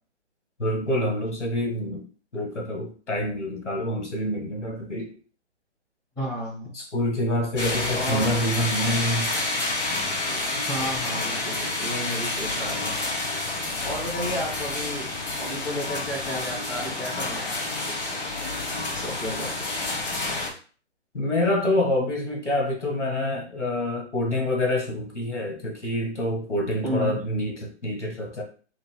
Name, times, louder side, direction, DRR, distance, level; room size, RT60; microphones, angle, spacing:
voice 1, 0.6-2.0 2.3-5.1 6.7-9.3 21.1-28.4, left 1 dB, 80° left, 1 dB, 1.8 m, -27 dB
voice 2, 6.2-6.7 7.9-8.3 10.7-13.0 13.8-15.1 15.4-17.6 17.9-18.2 18.9-19.5 26.8-27.2, equal, 10° left, -6 dB, 1.7 m, -32 dB
sound 1, 7.6-20.5, left 2 dB, 50° left, 2.3 m, -29 dB
7.0 x 2.7 x 2.2 m, 0.40 s
figure-of-eight pair, 145°, 35 cm